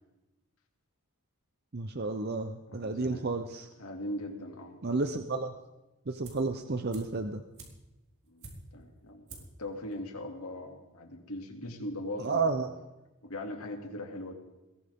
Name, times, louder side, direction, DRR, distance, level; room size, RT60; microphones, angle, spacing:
voice 1, 1.7-3.7 4.8-5.5 6.1-7.4 12.2-12.7, right 3 dB, 45° right, 7 dB, 0.7 m, -31 dB
voice 2, 2.7-3.3 3.8-4.8 8.3-12.5 13.2-14.3, left 1 dB, 80° left, 2 dB, 2.6 m, -40 dB
sound 1, 6.2-6.6 6.9-8.9 9.3-9.6 9.9-10.0, right 3 dB, 90° right, 4.3 m, -49 dB
21.5 x 18.0 x 3.7 m, 1.0 s
head